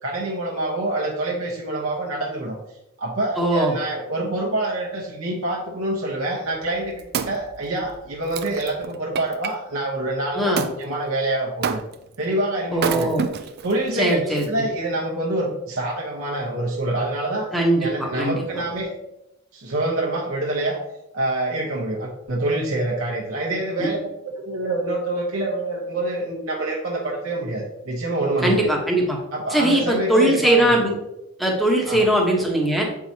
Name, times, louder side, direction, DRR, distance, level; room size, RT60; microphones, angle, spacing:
voice 1, 0.0-2.6 3.0-11.8 12.2-13.1 13.6-17.5 17.8-18.9 19.5-20.8 21.1-24.1 24.5-28.7 29.3-30.7 31.9-32.1, right 2 dB, 70° right, -2 dB, 1.0 m, -26 dB
voice 2, 3.4-3.7 10.3-10.6 12.7-13.3 14.0-14.5 17.5-18.4 23.8-23.9 28.4-29.2 29.5-31.0 31.4-32.9, right 1 dB, ahead, -1 dB, 1.1 m, -20 dB
Wood, 6.6-9.5 10.6-10.8 11.6-12.2 12.7-13.7 14.4-14.5, right 6 dB, 50° right, 0.4 m, -29 dB
7.6 x 4.7 x 2.8 m, 0.89 s
head